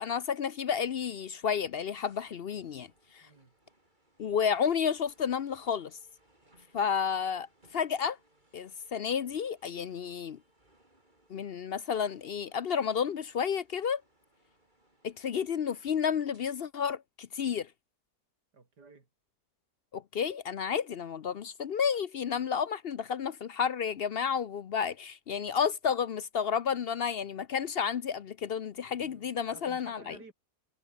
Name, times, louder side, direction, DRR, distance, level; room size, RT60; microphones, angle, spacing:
voice 1, 0.0-2.9 3.1-3.3 4.2-6.0 6.7-7.5 7.7-8.2 8.5-10.4 11.3-14.0 15.0-17.7 19.9-30.2, left 7 dB, 55° left, 0.6 m, -31 dB
sound 1, 0.8-16.5, right 1 dB, 25° right, 6.2 m, -68 dB
voice 2, 3.2-3.5 6.7-7.0 18.5-19.1 29.0-30.3, right 4 dB, 85° right, 4.0 m, -54 dB
omnidirectional pair, 1.7 m